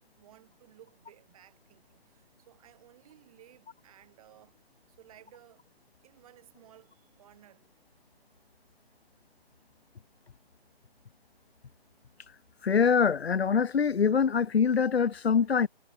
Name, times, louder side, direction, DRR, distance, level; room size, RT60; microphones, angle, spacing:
voice 1, 0.2-4.6 4.9-5.6 6.0-7.7, right 12 dB, 35° right, 5.6 m, -57 dB
voice 2, 12.6-15.7, left 6 dB, 75° left, 1.3 m, -24 dB
hypercardioid pair, 155°, 31 cm